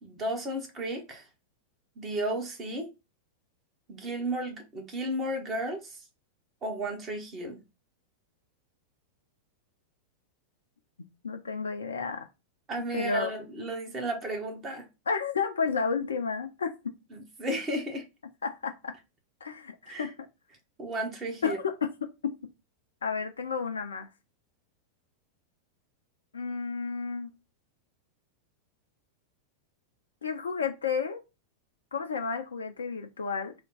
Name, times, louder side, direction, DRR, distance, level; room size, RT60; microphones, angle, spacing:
voice 1, 0.0-1.2 2.0-2.9 3.9-6.0 6.6-7.6 12.7-14.8 17.1-18.1 19.9-20.1 20.8-21.6, right 1 dB, 25° right, 1.1 m, -33 dB
voice 2, 11.2-12.3 12.9-13.3 15.1-16.9 18.4-19.0 19.4-20.1 21.4-21.9 22.2-22.3 23.0-24.1 26.3-27.3 30.2-31.2 31.9-33.5, left 5 dB, 70° left, 0.4 m, -31 dB
3.4 x 2.2 x 3.9 m
figure-of-eight pair, 90°, 0 cm